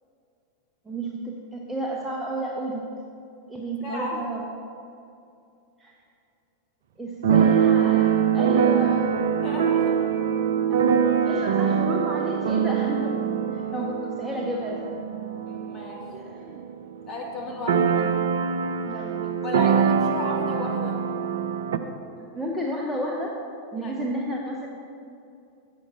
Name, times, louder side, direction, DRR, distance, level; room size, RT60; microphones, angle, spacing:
voice 1, 0.9-2.8 3.5-4.5 5.8-6.0 7.0-9.0 10.7-10.8 11.2-13.2 13.5-14.9 16.1-16.6 17.8-18.3 18.9-19.6 22.3-23.3 23.7-24.7, equal, 5° right, -2 dB, 0.7 m, -32 dB
voice 2, 3.8-4.2 9.4-10.0 15.5-16.0 17.1-17.9 19.4-21.0 23.8-24.0, left 2 dB, 25° left, -4 dB, 2.1 m, -34 dB
Keyboard (musical), 7.2-16.8 17.0-17.1 17.4-21.8, right 7 dB, 60° right, 0.5 m, -23 dB
7.1 x 5.2 x 6.9 m, 2.6 s
figure-of-eight pair, 90°, 0 cm